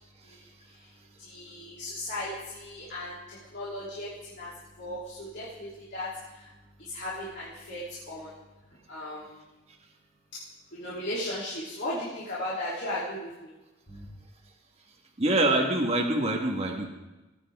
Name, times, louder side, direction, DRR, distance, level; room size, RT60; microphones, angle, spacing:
voice 1, 0.2-9.4 10.7-13.6 13.9-14.0, left 1 dB, 55° left, -9 dB, 3.2 m, -37 dB
voice 2, 15.2-16.9, right 2 dB, 30° right, 1 dB, 1.6 m, -25 dB
19.5 x 9.4 x 3.6 m, 1.1 s
head